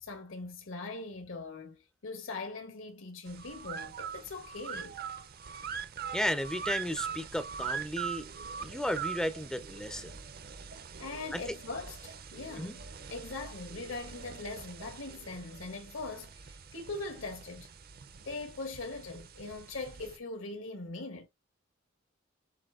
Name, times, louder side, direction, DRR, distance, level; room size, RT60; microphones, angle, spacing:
voice 1, 0.0-5.0 11.0-17.7 18.2-21.3, left 3 dB, 80° left, 1.6 m, -41 dB
sound 1, 3.3-20.2, right 6 dB, 50° right, 0.6 m, -42 dB
voice 2, 6.1-8.3 8.6-10.1 11.3-11.4 12.6-12.7, equal, 5° left, 0.5 m, -34 dB
7.6 x 2.6 x 2.4 m
head